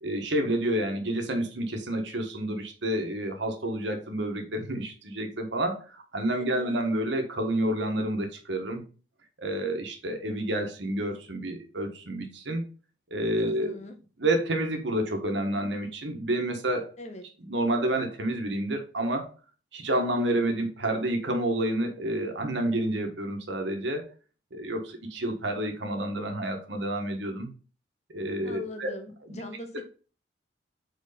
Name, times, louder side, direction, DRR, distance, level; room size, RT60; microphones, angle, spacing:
voice 1, 0.0-8.8 9.4-12.6 13.1-13.7 14.2-16.9 17.5-19.3 19.7-24.1 24.5-27.5 28.1-28.9, right 1 dB, 70° right, 4 dB, 1.4 m, -29 dB
voice 2, 6.3-6.8 13.4-14.0 17.0-17.2 28.4-29.8, left 1 dB, 35° left, 6 dB, 1.0 m, -41 dB
4.7 x 4.4 x 5.0 m, 0.37 s
head